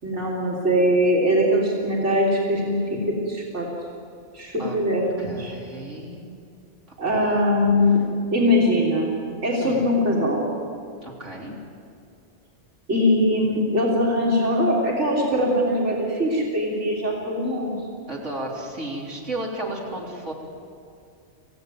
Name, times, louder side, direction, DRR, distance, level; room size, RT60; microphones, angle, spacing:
voice 1, 0.0-3.0 3.3-3.7 4.3-5.5 7.0-8.0 8.3-10.4 12.9-17.8, equal, 70° right, -3 dB, 3.9 m, -21 dB
voice 2, 5.2-6.3 6.9-7.0 7.3-7.4 9.6-9.9 11.0-11.6 18.1-20.3, right 1 dB, 85° right, -3 dB, 4.0 m, -33 dB
26.5 x 16.5 x 9.2 m, 2.4 s
omnidirectional pair, 1.2 m